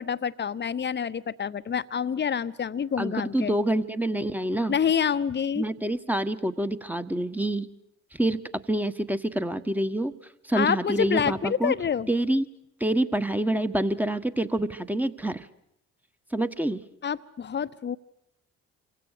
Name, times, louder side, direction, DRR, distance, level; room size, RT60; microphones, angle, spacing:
voice 1, 0.0-3.6 4.7-5.6 10.5-12.1 17.0-18.0, left 7 dB, 30° left, 14 dB, 1.0 m, -27 dB
voice 2, 3.0-4.8 5.6-7.7 8.1-8.4 8.7-10.1 10.5-11.7 12.1-12.5 12.8-15.5 16.3-16.8, right 1 dB, 5° right, 11 dB, 1.5 m, -27 dB
28.0 x 24.5 x 6.8 m, 0.80 s
figure-of-eight pair, 50°, 35 cm